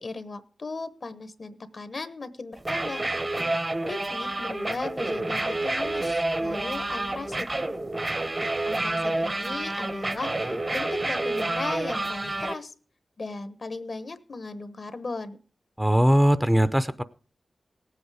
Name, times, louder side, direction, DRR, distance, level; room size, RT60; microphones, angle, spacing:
voice 1, 0.0-3.0 3.8-7.5 8.7-12.7 13.2-15.4, left 3 dB, 55° left, 13 dB, 1.0 m, -37 dB
sound 1, 2.6-12.5, right 2 dB, 35° right, 0.9 m, -29 dB
voice 2, 15.8-17.0, equal, 10° right, 14 dB, 0.6 m, -20 dB
17.5 x 8.1 x 4.9 m, 0.38 s
cardioid pair, 55°, 0 cm